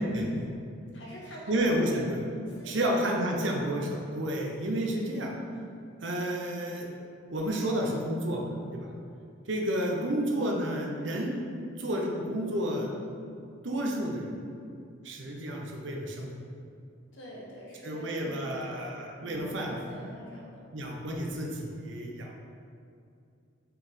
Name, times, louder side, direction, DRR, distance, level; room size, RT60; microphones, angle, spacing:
voice 1, 0.1-0.4 0.9-2.0 2.5-3.2 3.6-3.7 17.1-18.9 19.2-20.6, equal, 70° left, -4 dB, 1.4 m, -44 dB
voice 2, 1.5-2.2 2.6-3.9 4.1-5.3 6.0-6.9 7.3-8.4 8.7-8.9 9.5-11.3 11.8-12.9 13.6-14.3 15.0-16.3 17.8-19.8 20.7-22.4, right 1 dB, 70° right, 0 dB, 0.8 m, -30 dB
5.5 x 4.5 x 3.7 m, 2.5 s
head